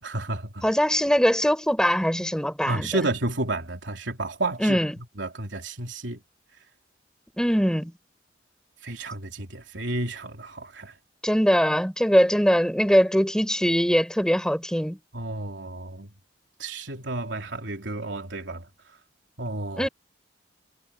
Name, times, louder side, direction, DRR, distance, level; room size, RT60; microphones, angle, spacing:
voice 1, 0.0-0.6 2.7-4.8 5.2-6.2 8.8-10.9 15.1-16.1 16.6-18.7 19.4-19.9, right 2 dB, 90° right, 3.4 m, -31 dB
voice 2, 0.6-2.9 4.6-4.9 7.4-7.9 11.2-15.0 19.8-19.9, equal, 5° left, 4.9 m, -22 dB
head